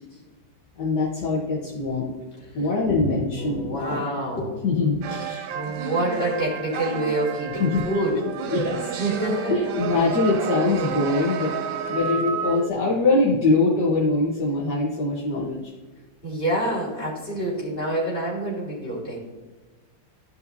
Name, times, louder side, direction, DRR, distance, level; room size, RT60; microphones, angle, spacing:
voice 1, 0.8-2.1 2.5-4.1 4.6-5.5 7.6-7.8 8.5-8.9 9.5-11.5 11.9-15.7, left 3 dB, 65° left, -5 dB, 1.7 m, -23 dB
voice 2, 3.3-4.6 5.5-8.2 9.0-9.7 16.2-19.2, right 1 dB, 30° left, -6 dB, 3.2 m, -27 dB
sound 1, 5.0-12.7, right 8 dB, 80° right, 1.4 m, -30 dB
13.5 x 5.4 x 2.7 m, 1.2 s
omnidirectional pair, 2.1 m